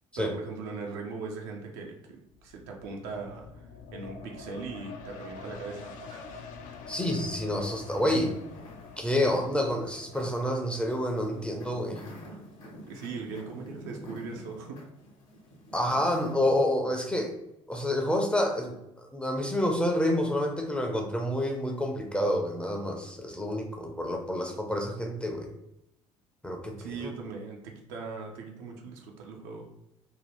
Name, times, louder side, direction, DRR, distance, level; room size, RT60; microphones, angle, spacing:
voice 1, 0.2-6.2 12.9-14.8 26.8-29.7, right 4 dB, 60° right, 1 dB, 0.6 m, -40 dB
sound 1, 2.3-15.6 16.0-16.1, left 4 dB, 50° left, 0.4 m, -47 dB
voice 2, 6.9-8.4 9.0-12.0 15.7-17.3 17.7-25.5 26.4-27.1, left 1 dB, 5° left, 1 dB, 0.6 m, -28 dB
sound 2, 7.9-16.5, equal, 70° left, 0.8 m, -48 dB
2.7 x 2.3 x 3.3 m, 0.83 s
figure-of-eight pair, 60°, 17 cm